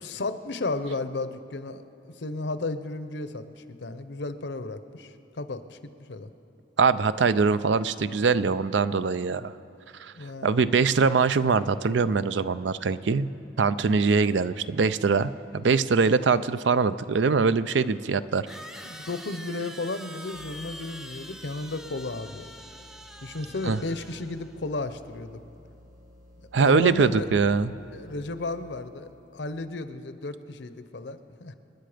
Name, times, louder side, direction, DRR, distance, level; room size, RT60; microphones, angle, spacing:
voice 1, 0.0-6.3 10.1-10.5 18.8-22.5 23.2-25.4 26.6-27.3 27.9-31.5, left 2 dB, 75° left, 11 dB, 0.8 m, -34 dB
voice 2, 6.8-9.5 10.0-10.1 10.4-13.3 13.6-18.5 23.6-23.8 26.5-27.7, right 4 dB, 85° right, 14 dB, 0.5 m, -23 dB
sound 1, 16.8-16.9 18.5-24.6, equal, 5° right, 0.6 m, -44 dB
sound 2, 20.3-29.0, left 1 dB, 45° right, 1.5 m, -54 dB
27.5 x 10.0 x 5.1 m, 2.9 s
head